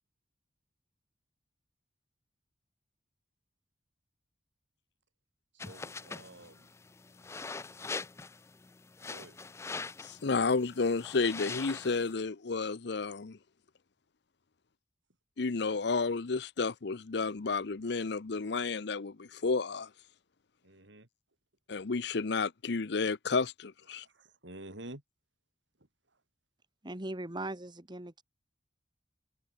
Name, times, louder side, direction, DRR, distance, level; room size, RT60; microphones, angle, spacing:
voice 1, 5.5-6.7 9.1-9.4 20.6-21.1 23.9-25.0, right 1 dB, 80° right, 3.8 m, -49 dB
sound 1, 5.6-12.1, left 4 dB, 15° left, 0.3 m, -43 dB
voice 2, 10.0-13.4 15.4-19.9 21.7-24.1, left 4 dB, 65° left, 0.7 m, -31 dB
voice 3, 26.8-28.2, right 1 dB, 25° right, 1.9 m, -39 dB
open air
head